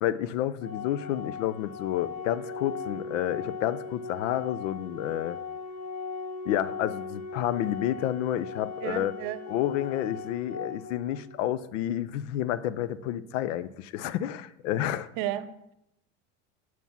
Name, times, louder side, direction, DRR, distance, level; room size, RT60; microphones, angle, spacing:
voice 1, 0.0-5.4 6.4-9.2 9.5-15.1, left 12 dB, 70° left, 17 dB, 0.7 m, -30 dB
Organ, 0.6-11.6, left 5 dB, 40° left, 4.2 m, -38 dB
voice 2, 8.8-9.4 15.2-15.7, right 12 dB, 60° right, 14 dB, 0.8 m, -33 dB
9.2 x 6.3 x 5.6 m, 0.84 s
hypercardioid pair, 90°, 38 cm